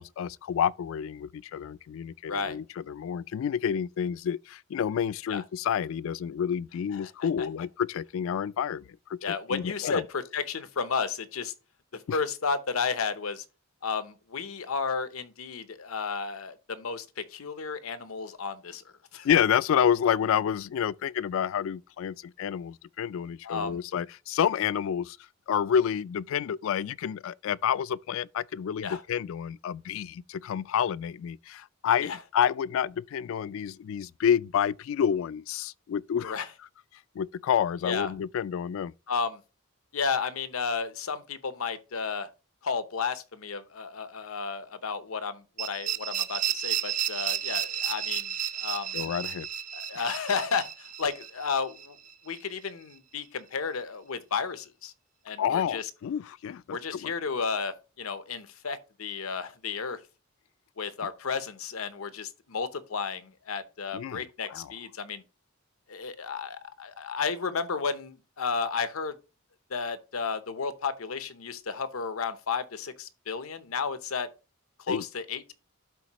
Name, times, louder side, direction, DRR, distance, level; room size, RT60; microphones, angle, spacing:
voice 1, 0.0-10.0 12.1-12.2 19.2-25.2 25.5-36.4 37.2-38.9 48.9-49.5 55.4-57.1 63.9-64.7 74.9-75.0, left 8 dB, 65° left, 0.3 m, -29 dB
voice 2, 6.9-7.3 9.2-11.5 11.9-13.4 13.8-18.8 19.1-19.3 23.4-23.8 28.8-29.0 32.0-32.2 36.2-36.5 37.8-38.1 39.1-39.4 39.9-42.3 42.6-49.0 49.7-52.0 52.2-54.9 55.2-55.9 56.7-60.0 60.8-65.2 65.9-69.1 69.7-74.3 74.9-75.5, left 5 dB, 85° left, 0.8 m, -33 dB
sound 1, 45.6-52.4, right 10 dB, 40° right, 0.6 m, -32 dB
11.5 x 4.0 x 2.9 m
head